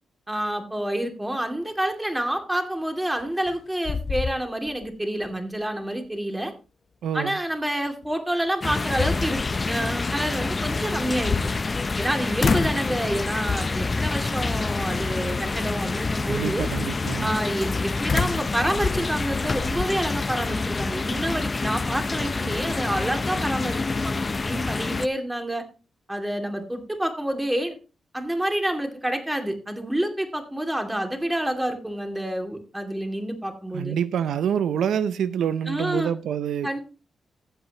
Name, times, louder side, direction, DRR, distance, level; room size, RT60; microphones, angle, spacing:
voice 1, 0.3-6.5 7.1-11.4 12.0-16.7 17.2-25.6 26.1-27.8 28.1-34.0 35.7-36.1 36.6-36.8, right 1 dB, 10° right, 2.5 m, -28 dB
sound 1, 3.2-3.6 3.8-4.9 5.2-5.3 8.0-8.1 8.7-9.6 10.9-12.0 12.4-12.9 13.5-13.8 14.6-15.1 18.1-19.9, left 5 dB, 50° left, 0.9 m, -28 dB
voice 2, 7.0-7.4 16.3-17.3 33.7-36.8, right 8 dB, 85° right, 0.6 m, -26 dB
sound 2, 8.6-25.1, left 3 dB, 35° left, 0.5 m, -27 dB
14.5 x 8.1 x 3.0 m
cardioid pair, 80°, 0 cm